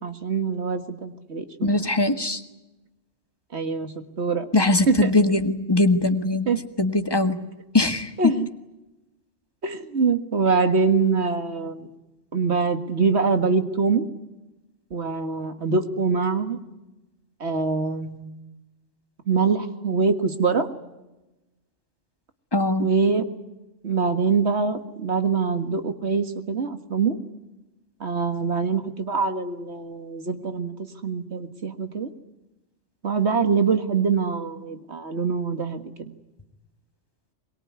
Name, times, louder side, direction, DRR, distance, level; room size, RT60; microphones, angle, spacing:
voice 1, 0.0-1.4 1.7-1.8 3.5-4.5 4.9-5.1 6.5-6.6 8.2-8.5 9.6-11.9 12.3-14.0 14.9-16.6 17.4-18.3 19.3-20.7 22.8-23.3 23.8-27.2 28.0-30.7 31.0-32.1 33.0-35.8, right 4 dB, 60° right, 8 dB, 2.1 m, -24 dB
voice 2, 1.6-2.4 4.5-6.5 6.8-7.4 7.7-8.1 22.5-22.9, left 2 dB, 20° left, 8 dB, 1.6 m, -21 dB
23.0 x 22.5 x 9.6 m, 1.0 s
omnidirectional pair, 1.3 m